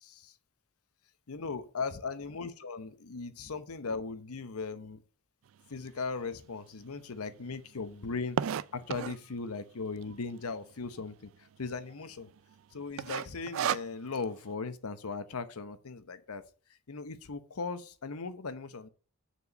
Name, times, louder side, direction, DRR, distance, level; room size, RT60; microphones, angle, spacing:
voice 1, 0.0-0.3 1.3-5.0 5.7-8.4 8.7-11.3 11.6-12.3 12.7-16.4 16.9-18.9, left 4 dB, 85° left, 0.8 m, -38 dB
sound 1, 5.9-6.0 6.5-6.6 6.8-6.9 7.2-9.3 10.0-10.4 10.7-10.8 11.0-11.1 11.7-12.0 12.3-12.6 13.0-14.2, right 9 dB, 65° right, 0.3 m, -33 dB
6.9 x 4.6 x 6.6 m
head